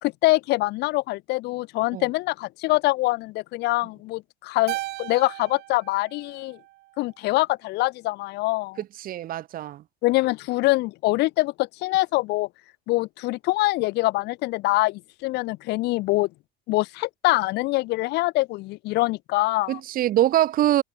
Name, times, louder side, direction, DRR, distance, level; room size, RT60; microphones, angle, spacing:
voice 1, 0.0-6.6 7.0-8.8 10.0-12.5 12.9-16.3 16.7-19.8, left 20 dB, 90° left, 1.2 m, -24 dB
Keyboard (musical), 4.7-7.2, right 19 dB, 85° right, 3.2 m, -36 dB
voice 2, 8.8-9.8 19.7-20.8, right 13 dB, 55° right, 0.6 m, -23 dB
cardioid pair, 110°, 17 cm